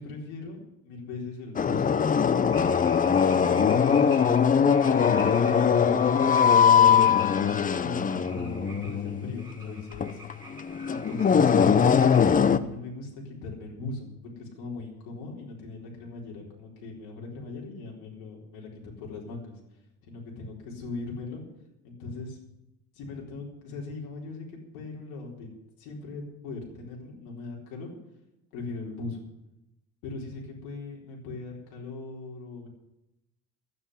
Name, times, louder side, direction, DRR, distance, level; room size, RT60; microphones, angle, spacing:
voice 1, 0.0-1.9 2.6-4.3 4.6-7.2 7.7-10.2 10.9-12.2 12.5-18.7 19.0-21.5 21.8-22.4 22.9-25.5 25.8-27.9 28.5-29.2 30.0-32.7, left 3 dB, 80° left, -1 dB, 4.2 m, -39 dB
sound 1, 1.6-12.6, left 7 dB, 25° left, 0.6 m, -21 dB
sound 2, 2.5-12.3, right 2 dB, 10° right, 5.7 m, -47 dB
12.0 x 9.0 x 9.7 m, 0.90 s
cardioid pair, 130°, 36 cm